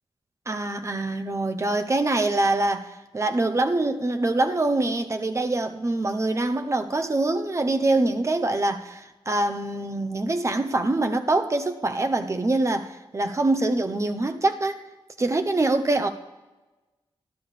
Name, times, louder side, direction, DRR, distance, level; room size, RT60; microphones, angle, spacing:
voice 1, 0.5-14.8 15.2-16.1, right 2 dB, 30° right, 0.9 m, -24 dB
24.5 x 12.5 x 3.4 m
wide cardioid pair, 120°, 10 cm